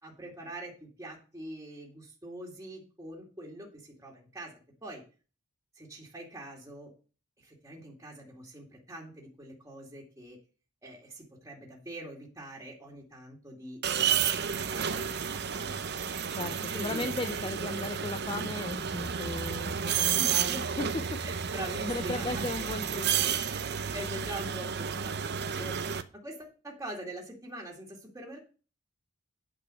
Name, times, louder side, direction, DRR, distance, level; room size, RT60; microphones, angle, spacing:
voice 1, 0.0-5.0 5.7-6.9 7.4-10.4 10.8-16.2 16.7-17.1 20.2-20.9 21.2-23.0 23.9-25.8 26.2-28.4, right 1 dB, 15° right, -3 dB, 2.3 m, -44 dB
sound 1, 13.8-26.0, right 7 dB, 50° right, 0.7 m, -31 dB
voice 2, 16.3-21.0 21.9-23.9 25.6-25.8, left 2 dB, 25° left, 8 dB, 0.6 m, -37 dB
9.3 x 5.4 x 7.7 m, 0.36 s
head